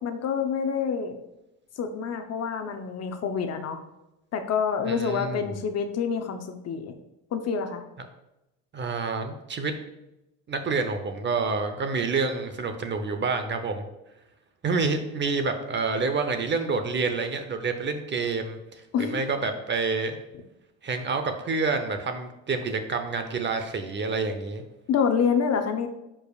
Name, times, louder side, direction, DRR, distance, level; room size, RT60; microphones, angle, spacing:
voice 1, 0.0-1.2 1.8-3.8 4.3-6.9 7.3-7.8 18.9-19.2 24.9-25.9, left 6 dB, 45° left, 7 dB, 0.7 m, -27 dB
voice 2, 4.8-5.4 8.7-9.7 10.5-13.8 14.6-18.6 19.0-20.2 20.8-24.6, right 4 dB, 30° right, 7 dB, 0.7 m, -28 dB
10.0 x 4.9 x 2.4 m, 0.92 s
cardioid pair, 110°, 37 cm